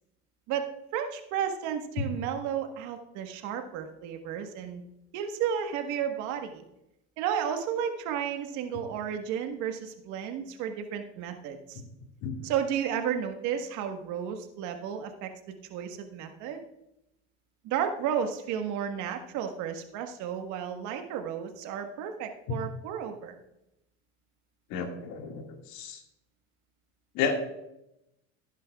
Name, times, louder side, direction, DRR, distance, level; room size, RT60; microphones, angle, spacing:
voice 1, 0.5-4.8 5.1-6.6 7.2-11.8 12.4-15.3 15.7-16.6 17.6-23.3, right 8 dB, 60° right, 6 dB, 1.5 m, -33 dB
voice 2, 24.7-25.4 25.7-26.0 27.2-27.4, left 6 dB, 60° left, 3 dB, 2.1 m, -31 dB
15.0 x 10.0 x 2.4 m, 0.86 s
supercardioid pair, 100°, 33 cm